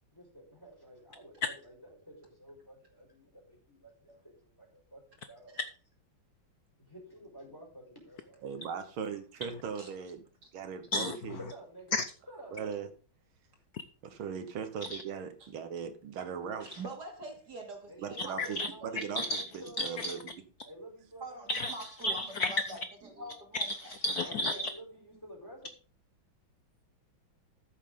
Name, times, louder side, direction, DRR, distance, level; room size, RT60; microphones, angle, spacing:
voice 1, 0.1-5.6 6.8-8.4 11.4-12.0 12.3-12.8 17.9-20.2 20.6-21.5 24.2-25.7, right 1 dB, 10° left, 4.6 m, -51 dB
voice 2, 8.4-10.2 10.5-11.4 12.5-12.9 14.0-16.7 18.0-20.3, right 7 dB, 85° right, 2.0 m, -39 dB
voice 3, 16.6-18.5 18.8-19.0 21.2-23.7 24.2-24.3, right 2 dB, 55° right, 2.9 m, -45 dB
voice 4, 19.0-19.4 19.8-20.1 21.5-21.7 22.0-22.5 23.7-24.6, left 2 dB, 70° left, 0.9 m, -32 dB
13.5 x 7.3 x 3.8 m
omnidirectional pair, 2.2 m